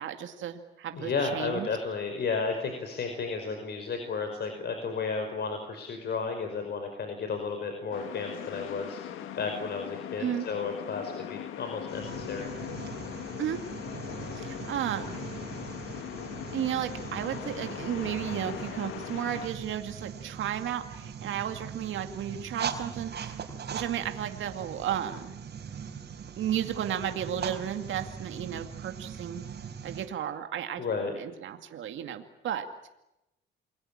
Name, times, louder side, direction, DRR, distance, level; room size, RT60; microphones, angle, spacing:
voice 1, 0.0-1.7 10.2-10.5 13.4-13.6 14.3-15.3 16.5-23.4 23.7-25.4 26.4-29.5 29.8-32.7, right 10 dB, 75° right, 6 dB, 2.3 m, -33 dB
voice 2, 0.9-9.0 9.3-12.5 30.8-31.1, left 4 dB, 55° left, 5 dB, 5.0 m, -33 dB
sound 1, 7.9-19.5, left 10 dB, 90° left, 1.9 m, -40 dB
sound 2, 11.9-30.1, right 7 dB, 55° right, 4.9 m, -41 dB
29.0 x 22.0 x 8.9 m, 0.91 s
cardioid pair, 90°, 20 cm